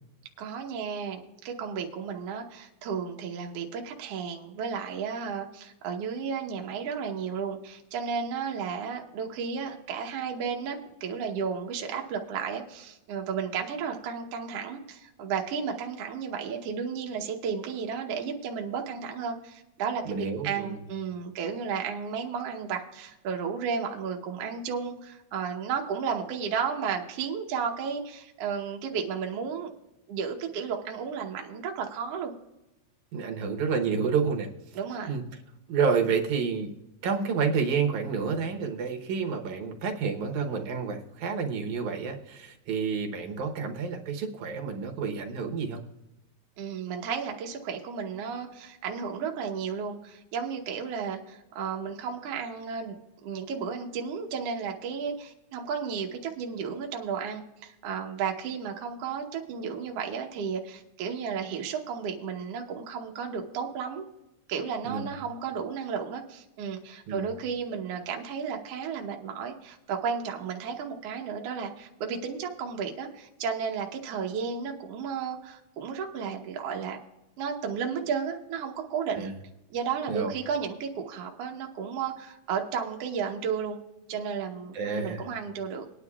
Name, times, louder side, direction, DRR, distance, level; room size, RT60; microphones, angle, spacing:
voice 1, 0.4-29.7 30.1-32.3 34.8-35.1 46.6-53.0 53.2-64.1 64.5-77.0 77.4-79.3 79.7-83.8 84.1-85.9, right 6 dB, 65° right, 2 dB, 1.9 m, -33 dB
voice 2, 20.1-20.8 33.1-34.5 35.1-35.2 35.7-36.8 37.0-45.8 64.8-65.1 67.1-67.3 79.1-79.3 80.1-80.3 84.7-85.3, right 5 dB, 85° right, 3 dB, 2.5 m, -29 dB
20.5 x 9.7 x 2.3 m, 0.95 s
omnidirectional pair, 3.3 m